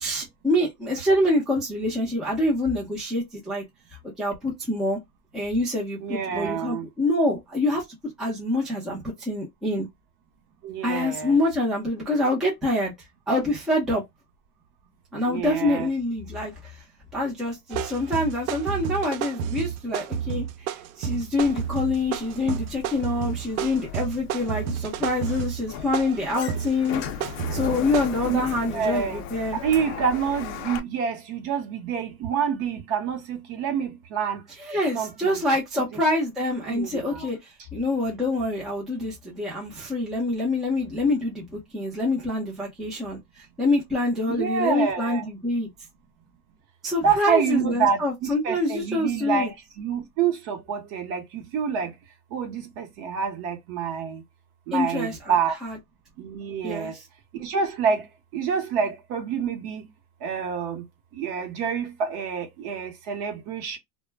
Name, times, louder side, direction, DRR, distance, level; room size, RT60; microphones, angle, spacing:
voice 1, 0.0-3.6 4.2-5.0 5.3-7.8 8.2-9.9 10.8-12.9 13.3-14.0 15.1-16.8 17.1-27.0 27.5-29.6 34.6-45.7 46.8-49.5 54.7-55.4 55.6-55.8 56.6-57.0, left 2 dB, ahead, 0.5 m, -26 dB
voice 2, 6.0-6.9 10.6-11.4 15.3-15.9 28.2-28.4 28.7-29.2 29.6-34.4 34.9-35.4 36.7-37.3 44.3-45.2 47.0-51.9 52.3-54.2 54.7-55.6 56.2-56.9 57.3-58.0 58.3-59.9 60.2-60.8 61.1-63.8, right 6 dB, 40° right, 0.9 m, -27 dB
sound 1, 17.7-28.1, right 8 dB, 70° right, 0.6 m, -31 dB
Sliding door, 21.4-30.8, left 7 dB, 50° left, 0.6 m, -37 dB
2.2 x 2.1 x 3.2 m
supercardioid pair, 145°, 46 cm